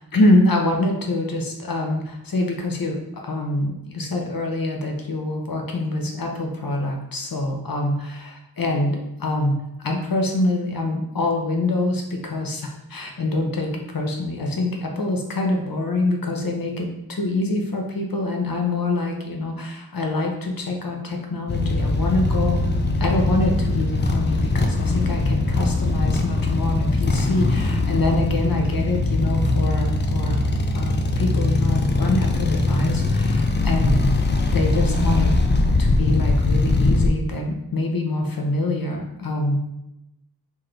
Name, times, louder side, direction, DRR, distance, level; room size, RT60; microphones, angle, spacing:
voice 1, 0.0-22.6 23.0-30.4 30.7-34.0 34.5-35.3 35.8-39.6, left 2 dB, 65° left, 1 dB, 0.7 m, -25 dB
sound 1, 21.5-37.1, left 2 dB, 30° left, 0.4 m, -21 dB
3.1 x 2.6 x 3.8 m, 0.90 s
wide cardioid pair, 60°, 38 cm